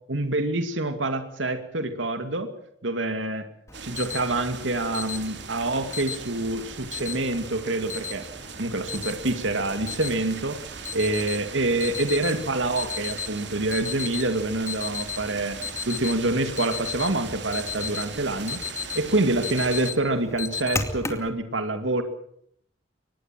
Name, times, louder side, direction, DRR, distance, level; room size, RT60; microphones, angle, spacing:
voice 1, 0.1-2.5 2.8-3.5 3.8-8.2 8.6-15.6 15.9-18.6 18.9-22.0, right 2 dB, 85° right, 8 dB, 2.4 m, -26 dB
Alarm, 3.7-21.3, left 5 dB, 15° left, 2.4 m, -36 dB
sound 1, 3.7-19.9, right 5 dB, 65° right, 2.9 m, -40 dB
24.0 x 19.5 x 7.6 m, 0.69 s
head